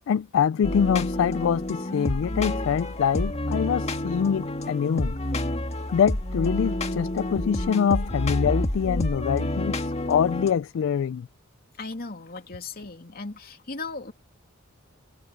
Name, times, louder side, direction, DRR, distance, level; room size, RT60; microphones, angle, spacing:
voice 1, 0.1-5.2 5.9-11.3, left 7 dB, 65° left, 0.3 m, -25 dB
sound 1, 0.6-10.5, left 1 dB, 30° left, 1.9 m, -29 dB
voice 2, 11.8-14.1, left 3 dB, 50° left, 2.8 m, -37 dB
head